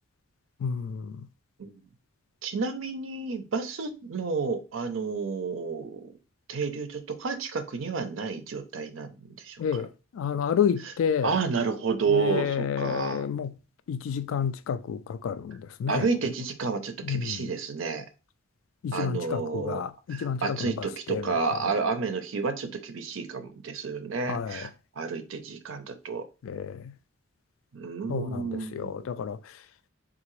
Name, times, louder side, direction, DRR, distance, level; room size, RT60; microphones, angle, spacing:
voice 1, 0.6-1.3 9.6-11.3 12.1-13.6 13.9-16.1 17.0-17.5 18.8-21.4 21.6-21.7 24.3-24.7 26.4-26.9 28.1-29.6, left 7 dB, 75° left, 0.3 m, -30 dB
voice 2, 2.4-6.1 6.5-9.6 11.2-13.2 15.9-18.0 18.9-19.8 20.1-24.7 25.0-26.2 27.7-29.0, right 4 dB, 70° right, 0.5 m, -30 dB
3.6 x 2.6 x 3.0 m
head